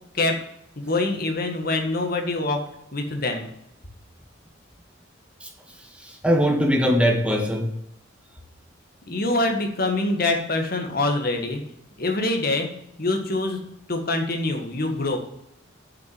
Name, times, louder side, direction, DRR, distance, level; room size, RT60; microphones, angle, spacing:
voice 1, 0.7-3.5 9.1-11.6 12.0-12.7 13.0-13.6 13.9-15.2, left 2 dB, 50° left, 4 dB, 1.7 m, -25 dB
voice 2, 5.8-7.7, equal, 5° right, 2 dB, 1.4 m, -21 dB
7.0 x 6.2 x 7.7 m, 0.78 s
head